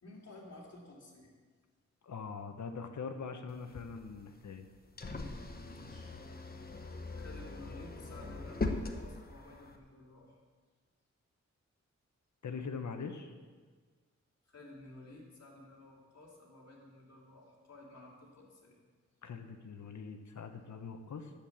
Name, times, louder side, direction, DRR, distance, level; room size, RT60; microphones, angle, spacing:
voice 1, 0.0-1.3 5.6-6.2 7.2-10.4 14.4-18.8, left 2 dB, 60° left, -3 dB, 3.0 m, -53 dB
voice 2, 2.0-4.7 12.4-13.3 19.2-21.3, left 5 dB, 75° left, 7 dB, 1.2 m, -42 dB
sound 1, 3.5-9.8, left 3 dB, 30° left, 1.1 m, -41 dB
10.5 x 8.6 x 7.2 m, 1.5 s
wide cardioid pair, 140°, 29 cm